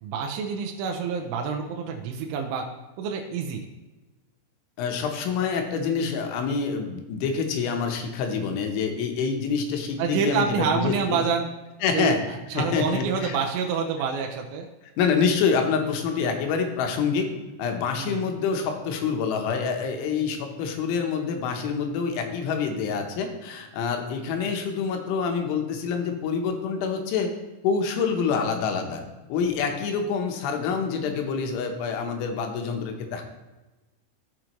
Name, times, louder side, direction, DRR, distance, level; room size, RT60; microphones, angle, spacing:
voice 1, 0.0-2.7 3.0-3.7 10.0-11.5 11.9-14.7 18.0-18.2, right 6 dB, 90° right, 2 dB, 3.1 m, -27 dB
voice 2, 4.8-11.2 11.8-12.2 12.5-13.4 15.0-17.3 17.6-27.3 27.6-29.0 29.3-33.2, left 5 dB, 80° left, 4 dB, 3.3 m, -26 dB
14.0 x 5.0 x 3.0 m, 1.1 s
omnidirectional pair, 5.5 m